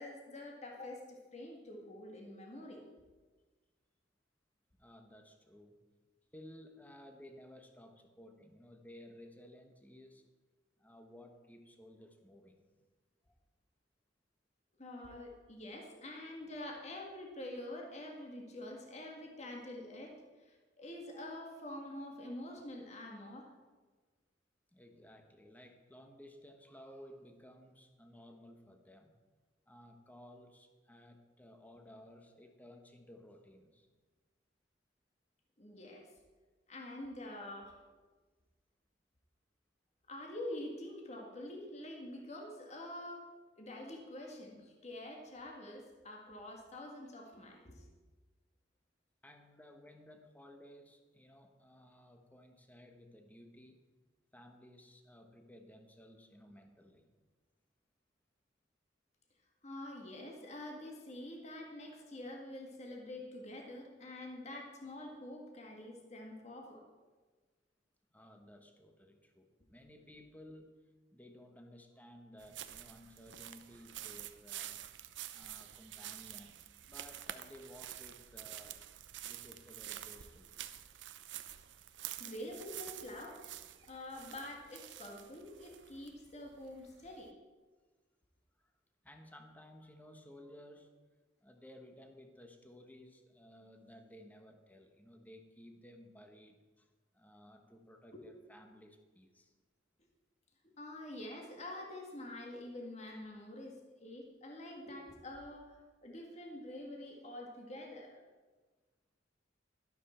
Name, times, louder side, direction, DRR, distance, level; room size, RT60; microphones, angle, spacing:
voice 1, 0.0-2.8 14.8-23.5 35.6-36.1 36.7-37.8 40.1-43.3 43.6-47.9 59.6-66.8 82.2-83.4 83.8-87.4 98.1-98.2 100.6-108.2, left 1 dB, 40° left, 0 dB, 1.9 m, -46 dB
voice 2, 4.8-5.8 6.3-10.2 10.8-12.6 13.3-13.4 24.7-29.1 29.7-33.9 49.2-53.8 54.3-57.1 68.1-70.7 71.1-74.8 75.3-78.9 79.2-80.6 88.6-88.7 89.0-90.9 91.4-99.5, left 1 dB, 10° left, 5 dB, 1.2 m, -56 dB
sound 1, 72.4-87.3, right 12 dB, 80° right, 0.7 m, -48 dB
12.0 x 12.0 x 4.4 m, 1.3 s
head